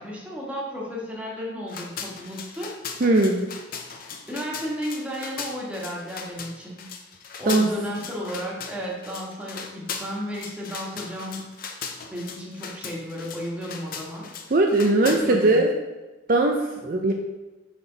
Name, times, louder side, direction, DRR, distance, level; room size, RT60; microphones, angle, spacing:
voice 1, 0.0-3.0 4.3-6.9 7.4-11.5 12.1-14.3 15.0-15.6, equal, 5° right, -4 dB, 1.5 m, -33 dB
sound 1, 1.7-15.2, left 6 dB, 50° left, 0.6 m, -38 dB
voice 2, 3.0-3.4 7.5-7.7 14.5-15.7 16.3-16.6 16.8-17.1, right 2 dB, 45° right, 2 dB, 0.5 m, -19 dB
6.0 x 5.9 x 3.9 m, 1.1 s
head